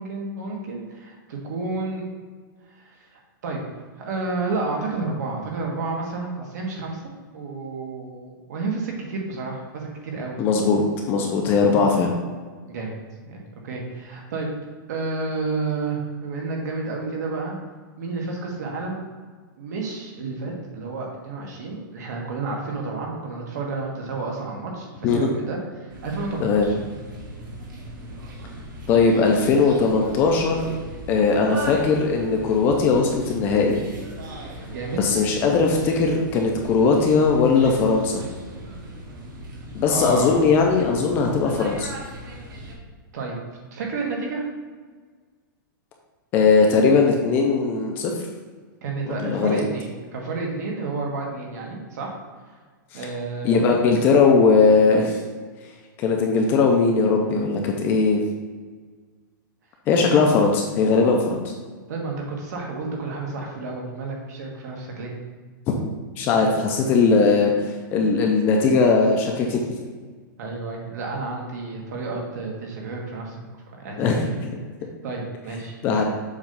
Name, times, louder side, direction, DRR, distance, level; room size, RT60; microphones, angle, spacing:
voice 1, 0.0-2.0 2.7-3.6 4.0-7.0 7.3-10.4 11.7-11.9 12.6-13.0 13.3-14.5 14.9-17.6 18.0-19.0 19.6-26.7 34.6-35.0 39.8-40.4 43.1-43.3 43.7-44.4 48.8-52.1 52.9-53.7 61.9-65.1 66.4-66.5 70.4-73.4 73.8-74.3 75.0-75.7, right 3 dB, 55° right, 0 dB, 1.6 m, -31 dB
voice 2, 10.4-10.8 11.1-12.1 25.0-25.3 26.4-26.7 28.9-30.8 31.1-33.8 35.0-38.2 39.7-41.9 46.3-48.1 49.1-49.6 52.9-53.0 53.4-55.2 56.0-58.2 59.9-61.5 66.2-67.5 67.9-69.8 74.0-74.2 75.8-76.0, left 4 dB, 20° left, 1 dB, 0.4 m, -19 dB
sound 1, 25.9-42.7, right 1 dB, 75° right, 1.7 m, -38 dB
7.2 x 3.1 x 5.2 m, 1.5 s
supercardioid pair, 175°, 11 cm